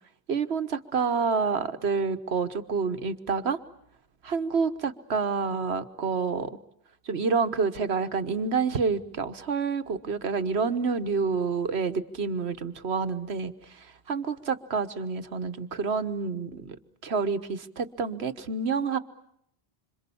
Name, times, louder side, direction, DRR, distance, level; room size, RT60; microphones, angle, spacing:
voice 1, 0.3-3.6 4.2-6.6 7.0-16.8 17.0-19.0, right 5 dB, 85° right, 11 dB, 1.5 m, -28 dB
27.0 x 27.0 x 7.1 m, 0.73 s
omnidirectional pair, 1.1 m